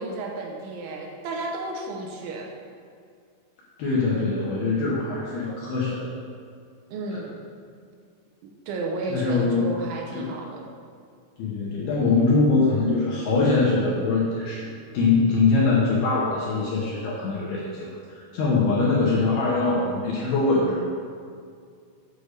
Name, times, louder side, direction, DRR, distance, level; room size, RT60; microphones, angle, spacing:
voice 1, 0.0-2.5 6.9-7.3 8.7-10.7, right 2 dB, 75° right, 0 dB, 3.1 m, -32 dB
voice 2, 3.8-6.1 7.1-7.2 9.1-9.8 10.1-10.3 11.4-14.7 14.9-20.8, left 3 dB, 70° left, -5 dB, 2.5 m, -23 dB
7.7 x 6.8 x 6.7 m, 2.2 s
omnidirectional pair, 5.8 m